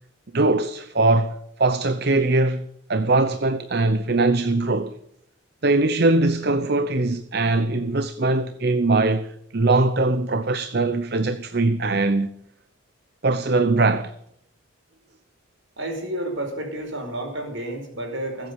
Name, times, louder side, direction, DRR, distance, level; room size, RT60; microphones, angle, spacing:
voice 1, 0.3-4.9 5.6-12.3 13.2-14.1, right 2 dB, 50° right, 0.8 m, -21 dB
voice 2, 15.8-18.5, right 1 dB, 65° right, 5.0 m, -30 dB
20.0 x 8.4 x 8.3 m
head